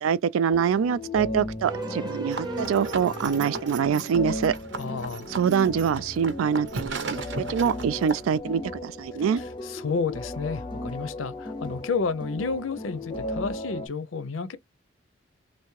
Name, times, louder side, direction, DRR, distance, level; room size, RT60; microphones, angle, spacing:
voice 1, 0.0-4.5 5.3-7.2 7.5-9.4, right 7 dB, 85° right, 0.3 m, -25 dB
sound 1, 0.5-13.9, left 1 dB, 25° left, 0.5 m, -36 dB
sound 2, 1.6-4.9, right 1 dB, 20° right, 0.7 m, -37 dB
sound 3, 2.3-8.4, right 3 dB, 60° right, 0.7 m, -37 dB
voice 2, 4.8-5.3 9.4-14.6, left 4 dB, 75° left, 0.6 m, -31 dB
3.4 x 2.6 x 3.1 m
head